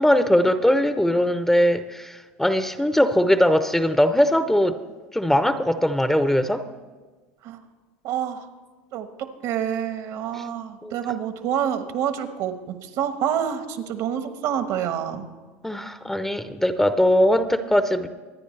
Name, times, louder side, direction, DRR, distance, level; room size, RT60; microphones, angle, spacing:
voice 1, 0.0-4.8 5.1-6.7 10.4-10.5 10.8-10.9 15.6-18.1, equal, 5° left, 11 dB, 0.7 m, -20 dB
voice 2, 8.0-8.4 8.9-15.3, right 9 dB, 65° right, 9 dB, 1.3 m, -27 dB
23.5 x 9.9 x 3.3 m, 1.4 s
supercardioid pair, 95°, 7 cm